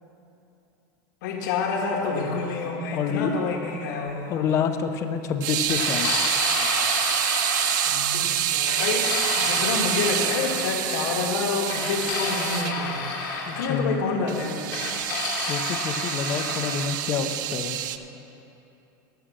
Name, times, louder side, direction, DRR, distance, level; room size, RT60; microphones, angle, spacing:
voice 1, 1.2-4.3 7.7-9.1 9.3-13.0 13.5-14.7, left 4 dB, 70° left, 0 dB, 1.5 m, -28 dB
voice 2, 2.9-3.3 4.3-6.3 13.5-14.0 15.3-17.8, left 7 dB, 25° left, 8 dB, 0.5 m, -28 dB
sound 1, 5.4-12.7 14.3-18.0, right 12 dB, 70° right, 0.5 m, -27 dB
sound 2, 5.7-8.2 8.7-10.6 11.7-13.7 14.7-16.8, left 4 dB, 85° left, 2.3 m, -30 dB
12.5 x 6.9 x 6.2 m, 2.9 s
supercardioid pair, 175°, 11 cm